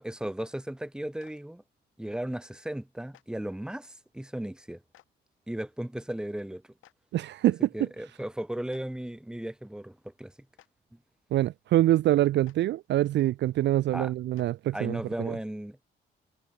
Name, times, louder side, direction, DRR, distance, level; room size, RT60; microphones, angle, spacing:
voice 1, 0.0-1.6 2.0-4.8 5.5-6.6 7.7-10.3 13.9-14.1 14.7-15.8, right 1 dB, 5° right, 1.2 m, -36 dB
Clapping, 1.2-1.3 3.1-3.2 4.9-5.1 6.8-6.9 8.7-8.8 10.5-10.7 12.4-12.5 14.3-14.5, left 14 dB, 85° left, 7.8 m, -56 dB
voice 2, 7.1-7.6 11.3-15.0 15.3-15.4, right 14 dB, 65° right, 0.4 m, -25 dB
cardioid pair, 90°, 20 cm